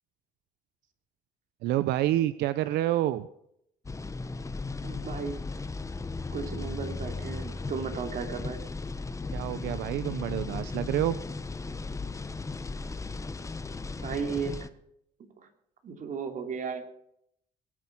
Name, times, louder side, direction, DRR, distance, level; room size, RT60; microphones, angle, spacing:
voice 1, 1.6-3.3 9.3-11.2, right 14 dB, 80° right, 14 dB, 0.7 m, -28 dB
sound 1, 3.8-14.7, left 3 dB, 20° left, 1.1 m, -36 dB
voice 2, 4.8-5.4 6.3-8.6 14.0-14.7 15.4-15.5 15.8-16.9, right 6 dB, 50° right, 5 dB, 3.0 m, -35 dB
21.0 x 9.6 x 6.1 m, 0.73 s
cardioid pair, 110°, 17 cm